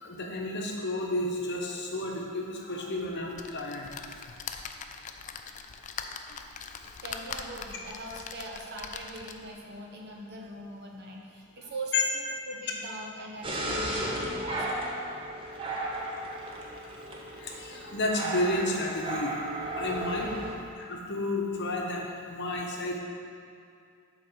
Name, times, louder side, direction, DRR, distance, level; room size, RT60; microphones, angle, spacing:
voice 1, 0.0-3.9 11.9-12.0 17.4-19.3 19.8-20.3 20.8-23.0, left 2 dB, 55° left, 0 dB, 1.0 m, -31 dB
sound 1, 3.3-9.6 10.1-10.2 10.5-10.6, left 6 dB, 35° left, 0.3 m, -42 dB
voice 2, 7.0-14.8, right 1 dB, 50° right, 0 dB, 1.0 m, -42 dB
sound 2, 13.4-20.6, right 1 dB, 25° right, 0.8 m, -34 dB
7.7 x 4.0 x 6.2 m, 2.4 s
head